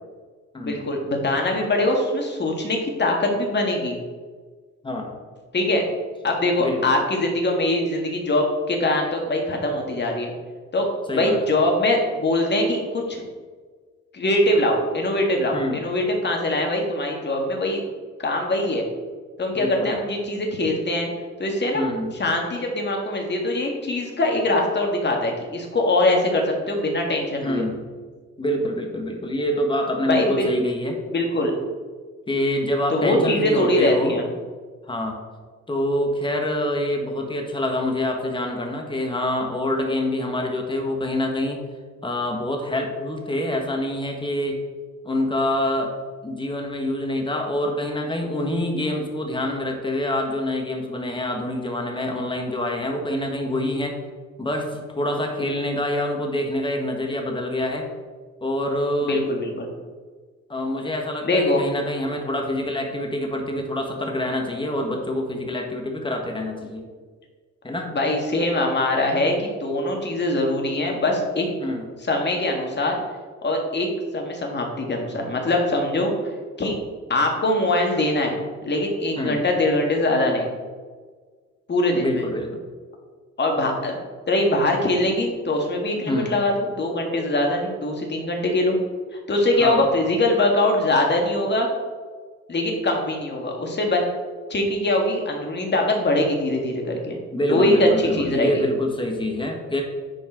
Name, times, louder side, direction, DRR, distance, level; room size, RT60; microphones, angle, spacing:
voice 1, 0.6-4.0 5.5-5.8 6.2-10.3 10.7-10.9 11.1-13.2 14.1-17.8 18.2-18.8 19.4-21.1 21.4-21.9 22.2-27.7 30.0-30.5 31.1-31.5 32.9-34.2 59.0-59.7 61.2-61.6 67.9-71.5 72.1-73.0 73.4-73.9 74.1-76.1 76.6-76.8 77.1-80.5 81.7-82.2 83.4-84.0 84.3-88.8 89.3-91.7 92.5-94.0 94.5-97.2 97.5-98.7, left 1 dB, 35° left, 1 dB, 1.9 m, -22 dB
voice 2, 6.6-6.9 11.1-11.4 15.5-15.8 19.5-19.9 21.7-22.1 27.4-27.8 28.4-31.0 32.3-34.2 34.9-35.2 35.7-41.6 42.0-44.6 45.0-45.9 46.2-53.9 54.4-57.8 58.4-59.2 60.5-66.9 67.6-67.9 71.6-71.9 79.1-79.4 81.9-82.6 86.1-86.4 89.6-89.9 97.3-99.8, left 1 dB, 15° left, 2 dB, 1.6 m, -26 dB
9.9 x 4.6 x 4.5 m, 1.5 s
cardioid pair, 90°, 30 cm